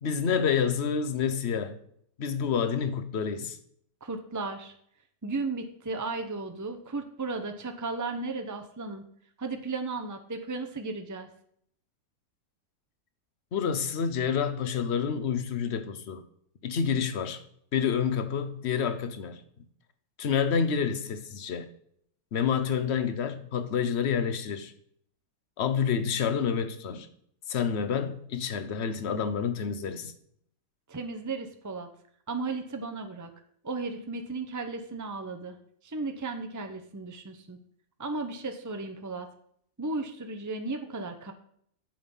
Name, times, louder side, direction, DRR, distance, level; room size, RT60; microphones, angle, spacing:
voice 1, 0.0-1.8 2.2-3.6 13.5-16.2 16.6-17.4 17.7-19.4 20.2-21.7 22.3-24.7 25.6-27.1 27.5-30.1, left 7 dB, 50° left, 1.1 m, -28 dB
voice 2, 4.0-4.7 5.2-9.0 9.4-11.3 30.9-31.9 32.3-33.3 33.6-35.6 35.8-37.6 38.0-39.3 39.8-41.3, right 3 dB, 25° right, 0.3 m, -35 dB
9.1 x 7.8 x 5.5 m
omnidirectional pair, 1.7 m